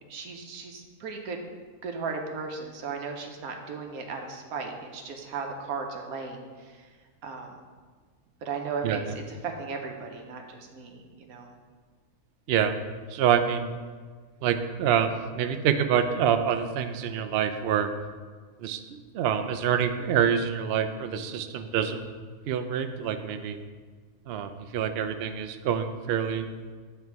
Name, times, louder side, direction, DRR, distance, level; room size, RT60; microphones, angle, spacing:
voice 1, 0.1-1.4 1.8-6.8 7.2-7.5 8.4-9.0 9.3-11.5, right 5 dB, 85° right, 3 dB, 1.3 m, -36 dB
voice 2, 8.8-9.2 12.5-12.8 13.1-13.7 14.4-17.9 18.6-18.8 19.1-22.0 22.5-23.6 24.3-26.5, right 8 dB, 70° right, 8 dB, 0.6 m, -26 dB
9.4 x 3.4 x 4.6 m, 1.5 s
omnidirectional pair, 1.5 m